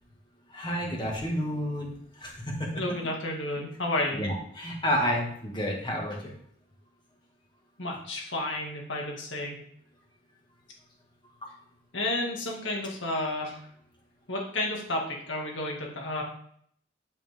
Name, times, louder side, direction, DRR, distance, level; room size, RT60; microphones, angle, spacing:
voice 1, 0.5-2.8 4.1-6.3, equal, 25° left, -1 dB, 1.9 m, -30 dB
voice 2, 2.7-4.2 7.8-9.6 11.9-13.6 14.3-16.2, left 1 dB, 85° left, 0 dB, 2.1 m, -31 dB
8.8 x 5.8 x 3.6 m, 0.65 s
head